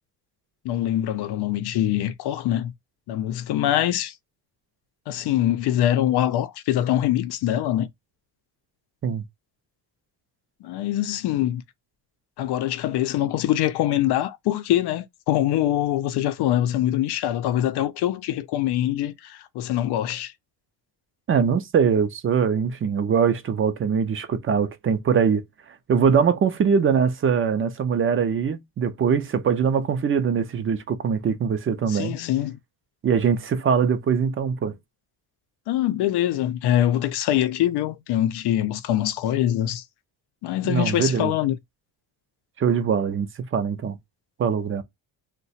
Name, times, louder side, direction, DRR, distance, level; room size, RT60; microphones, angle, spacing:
voice 1, 0.6-2.7 3.1-4.1 5.1-7.9 10.6-11.6 12.4-20.3 31.9-32.6 35.7-39.8 40.4-41.6, left 12 dB, 85° left, 0.6 m, -24 dB
voice 2, 21.3-25.4 25.9-32.1 33.0-34.7 40.6-41.3 42.6-44.0 44.4-44.8, right 6 dB, 35° right, 0.5 m, -22 dB
2.8 x 2.2 x 4.0 m
cardioid pair, 155°, 38 cm